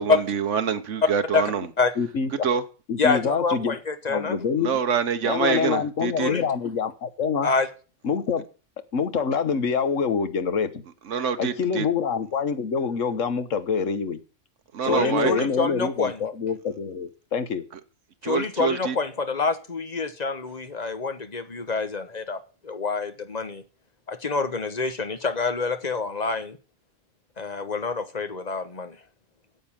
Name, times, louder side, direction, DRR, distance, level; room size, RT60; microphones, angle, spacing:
voice 1, 0.0-1.7 2.4-2.6 4.6-6.3 11.0-11.9 14.7-15.5 17.7-17.8 18.2-19.0, right 7 dB, 70° right, 1.4 m, -26 dB
voice 2, 2.0-2.5 2.9-3.7 4.1-4.7 5.3-7.5 8.0-8.4 8.9-10.8 11.4-14.2 14.9-17.6, left 6 dB, 80° left, 1.6 m, -26 dB
voice 3, 3.0-4.4 6.2-6.4 7.4-7.7 14.9-16.2 18.2-23.6 24.1-26.6 27.4-29.0, left 4 dB, 35° left, 1.3 m, -26 dB
9.4 x 8.0 x 8.9 m
omnidirectional pair, 1.3 m